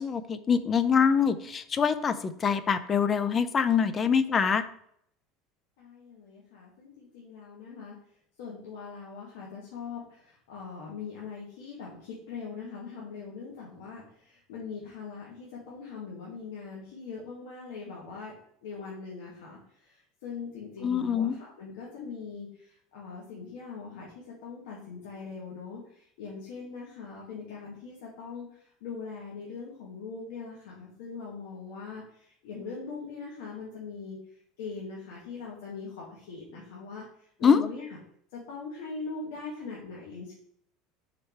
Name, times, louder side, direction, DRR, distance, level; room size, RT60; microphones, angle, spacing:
voice 1, 0.0-4.6 20.8-21.3 37.4-37.7, left 6 dB, 25° left, 13 dB, 0.5 m, -24 dB
voice 2, 5.8-7.9 8.4-10.2 10.5-18.3 18.6-19.6 19.9-25.8 26.2-28.5 28.8-34.2 34.6-37.0 37.4-37.9 38.3-40.3, left 5 dB, 85° left, -4 dB, 1.8 m, -41 dB
5.6 x 4.8 x 4.5 m, 0.68 s
cardioid pair, 155°, 0 cm